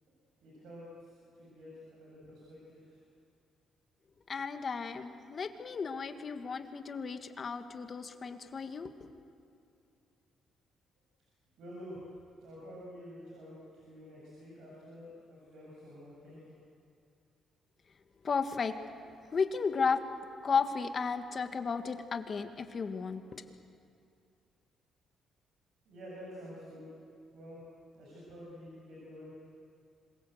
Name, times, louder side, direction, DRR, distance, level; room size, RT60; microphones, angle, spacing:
voice 1, 0.4-1.1 1.4-2.8 11.6-12.0 12.4-13.5 13.8-16.5 25.9-26.9 27.3-27.6 27.9-29.4, equal, 80° right, -5 dB, 7.5 m, -49 dB
voice 2, 4.3-9.1 18.2-18.7 19.3-20.0 20.4-23.4, left 5 dB, 45° left, 7 dB, 1.7 m, -34 dB
26.5 x 22.0 x 8.0 m, 2.5 s
cardioid pair, 90°, 0 cm